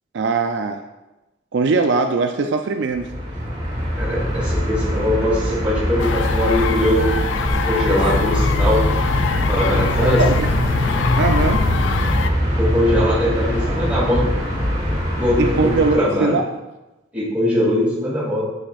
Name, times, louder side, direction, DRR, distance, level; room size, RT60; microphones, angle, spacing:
voice 1, 0.1-0.8 1.5-3.1 10.2-10.5 11.2-11.7 15.4-16.4, right 4 dB, 65° right, 5 dB, 0.4 m, -20 dB
sound 1, 2.9-15.9, equal, 25° right, 2.2 m, -22 dB
voice 2, 4.0-7.1 7.5-8.8 9.5-10.2 12.6-14.2 15.2-16.4 17.1-18.4, left 1 dB, 10° right, -8 dB, 2.6 m, -21 dB
sound 2, 6.0-12.3, left 4 dB, 75° left, 0.4 m, -23 dB
8.7 x 6.5 x 2.4 m, 1.0 s
head